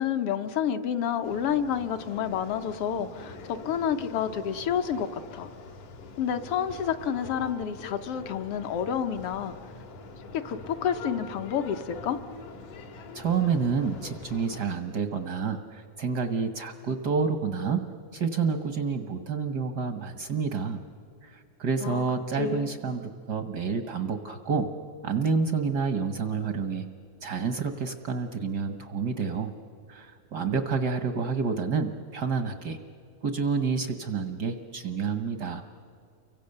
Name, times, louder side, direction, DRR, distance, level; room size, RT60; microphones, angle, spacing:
voice 1, 0.0-5.5 6.2-9.5 10.3-12.2 21.8-22.0 22.4-22.7, left 8 dB, 65° left, 9 dB, 1.5 m, -29 dB
sound 1, 1.2-14.6, left 3 dB, 80° left, 3.4 m, -44 dB
voice 2, 13.1-17.8 18.1-20.8 21.2-24.7 25.0-26.9 27.2-29.5 29.9-32.8 33.2-35.6, right 5 dB, 65° right, 8 dB, 1.0 m, -29 dB
30.0 x 24.0 x 6.6 m, 2.5 s
omnidirectional pair, 3.4 m